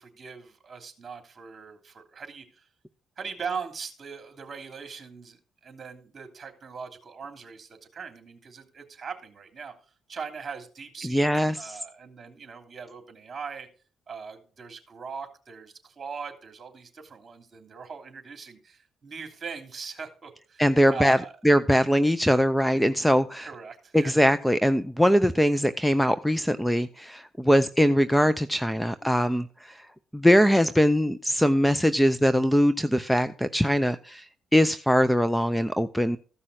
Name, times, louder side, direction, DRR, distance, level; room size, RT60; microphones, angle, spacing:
voice 1, 0.0-2.7 3.2-9.7 10.1-11.2 11.5-13.7 14.1-20.6 20.9-21.3 23.4-24.2, right 5 dB, 40° right, 6 dB, 3.0 m, -40 dB
voice 2, 11.0-11.8 20.6-21.2 21.4-23.5 23.9-29.9 30.1-34.3 34.5-36.2, equal, 5° left, 13 dB, 0.6 m, -22 dB
14.5 x 5.6 x 6.3 m, 0.39 s
cardioid pair, 90°, 0 cm